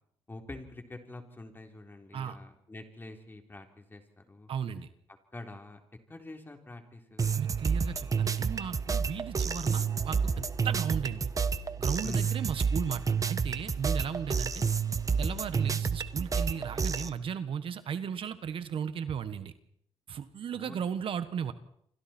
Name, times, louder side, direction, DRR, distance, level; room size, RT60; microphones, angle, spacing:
voice 1, 0.3-4.5 5.3-5.8 6.1-7.3 12.0-12.3 20.5-20.8, left 2 dB, 20° left, 4 dB, 3.7 m, -46 dB
voice 2, 4.5-4.9 7.4-11.3 11.8-14.6 15.2-19.5 20.1-21.5, right 7 dB, 60° right, 12 dB, 1.4 m, -35 dB
sound 1, 7.2-17.1, right 5 dB, 35° right, 1.1 m, -30 dB
28.5 x 25.0 x 4.5 m, 0.70 s
cardioid pair, 90°, 10 cm